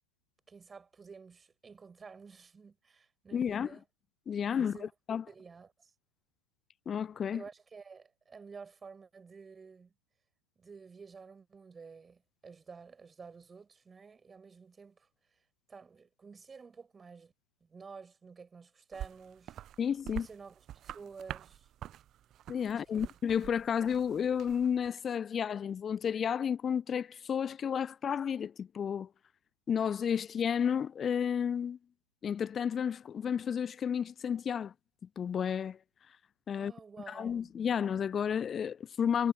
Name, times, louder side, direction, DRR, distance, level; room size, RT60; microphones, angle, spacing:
voice 1, 0.5-3.8 4.4-4.9 5.3-5.9 7.3-9.9 10.6-15.1 15.7-17.3 17.6-19.6 20.1-21.7 22.7-23.1 23.7-23.8 36.5-37.5, right 5 dB, 15° right, 7.7 m, -51 dB
voice 2, 3.3-3.7 4.3-5.2 6.9-7.4 19.8-20.3 22.5-29.1 29.7-31.8 32.2-34.7 35.2-35.8 36.5-36.7 37.1-39.3, left 8 dB, 20° left, 0.4 m, -32 dB
sound 1, 18.9-24.9, right 12 dB, 30° right, 0.9 m, -46 dB
figure-of-eight pair, 90°, 0 cm